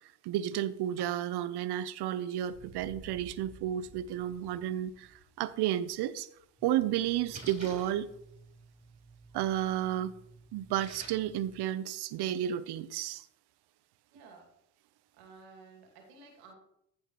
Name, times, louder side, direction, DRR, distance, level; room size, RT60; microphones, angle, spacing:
voice 1, 0.2-6.3 6.6-8.1 9.3-10.1 10.5-13.2, right 11 dB, 65° right, 15 dB, 0.8 m, -32 dB
sound 1, 2.4-7.0, right 1 dB, ahead, 3.6 m, -55 dB
Splash splatter, 6.6-11.6, right 2 dB, 15° right, 3.8 m, -51 dB
voice 2, 14.1-14.5 15.1-16.5, right 4 dB, 80° right, 2 dB, 2.5 m, -54 dB
14.5 x 5.4 x 3.1 m, 0.73 s
hypercardioid pair, 65°, 43 cm